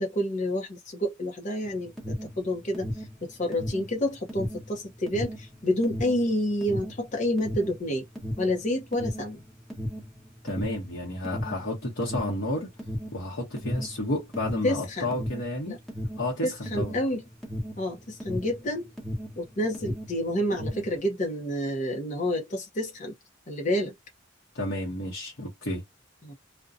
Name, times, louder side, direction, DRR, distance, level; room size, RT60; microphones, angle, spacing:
voice 1, 0.0-8.0 8.4-9.4 14.6-15.2 15.7-15.8 16.4-17.2 17.8-18.9 19.4-23.1 23.5-23.9 26.2-26.3, left 1 dB, 40° left, 0.6 m, -29 dB
Alarm, 1.8-19.4 19.7-21.0, equal, ahead, 0.9 m, -35 dB
voice 2, 10.4-12.7 13.1-15.8 16.2-17.0 24.5-25.8, left 1 dB, 70° left, 0.9 m, -31 dB
2.5 x 2.2 x 2.4 m
head